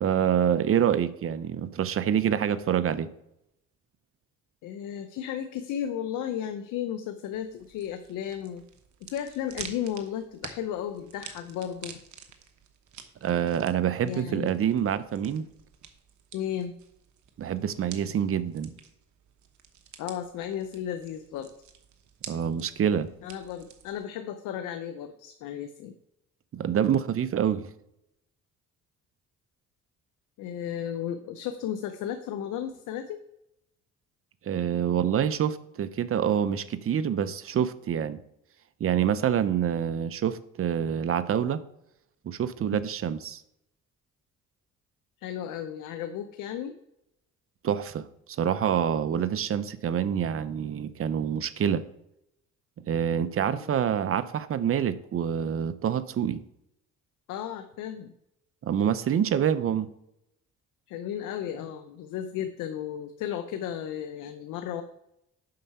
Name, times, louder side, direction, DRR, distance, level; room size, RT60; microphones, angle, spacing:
voice 1, 0.0-3.1 13.2-15.4 17.4-18.7 22.3-23.1 26.5-27.7 34.5-38.2 38.8-41.6 42.2-43.4 47.6-48.0 48.4-51.8 52.9-56.4 58.6-59.9, right 9 dB, 45° right, 14 dB, 0.6 m, -26 dB
voice 2, 4.6-8.6 9.0-12.0 14.0-14.5 16.3-16.7 20.0-21.5 23.2-25.9 30.4-33.2 45.2-46.8 53.4-53.7 57.3-58.1 60.9-64.8, left 9 dB, 90° left, 8 dB, 0.6 m, -34 dB
sound 1, 7.3-24.1, right 8 dB, 70° right, 1.1 m, -49 dB
7.7 x 5.6 x 5.4 m, 0.82 s
cardioid pair, 90°, 30 cm